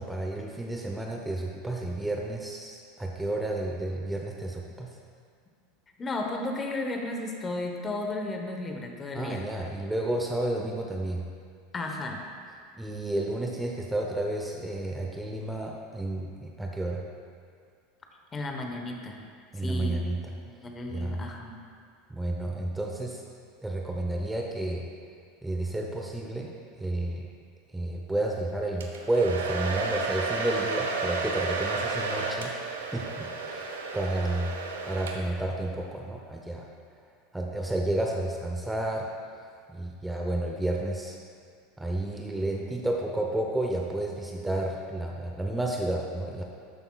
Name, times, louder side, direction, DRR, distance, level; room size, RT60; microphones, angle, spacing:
voice 1, 0.0-4.9 9.1-11.2 12.8-17.0 19.5-20.2 20.9-21.2 22.1-23.2 23.6-24.8 25.4-27.3 27.7-32.5 32.8-34.5 34.8-36.7 37.3-39.1 39.7-41.2 41.8-46.4, right 1 dB, 10° right, 0 dB, 0.7 m, -31 dB
voice 2, 6.0-9.5 11.7-12.2 18.3-19.2 19.6-20.0 20.6-21.5, left 2 dB, 25° left, 3 dB, 1.1 m, -34 dB
Domestic sounds home sounds, 28.8-35.5, right 3 dB, 80° right, 0.7 m, -32 dB
12.0 x 6.8 x 2.4 m, 2.1 s
hypercardioid pair, 85°, 0 cm